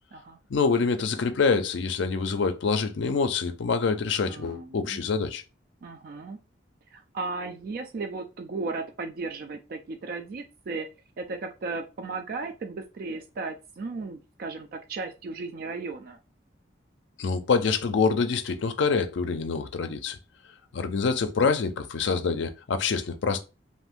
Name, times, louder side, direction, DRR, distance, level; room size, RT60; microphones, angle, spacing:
voice 1, 0.5-5.4 17.2-20.2 20.7-23.4, left 5 dB, 70° left, 0.4 m, -26 dB
voice 2, 4.3-5.0 5.8-6.4 6.9-10.9 11.2-16.2, right 3 dB, 50° right, 0.3 m, -35 dB
2.6 x 2.5 x 3.5 m
head